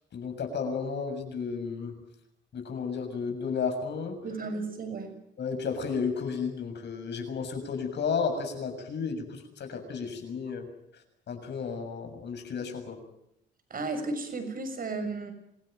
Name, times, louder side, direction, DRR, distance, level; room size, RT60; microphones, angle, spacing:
voice 1, 0.1-2.0 2.5-4.2 5.4-10.7 11.3-13.0, left 5 dB, 60° left, 6 dB, 7.0 m, -33 dB
voice 2, 4.2-5.1 13.7-15.3, right 3 dB, 45° right, 8 dB, 6.7 m, -34 dB
26.5 x 17.0 x 9.1 m, 0.78 s
cardioid pair, 90°, 20 cm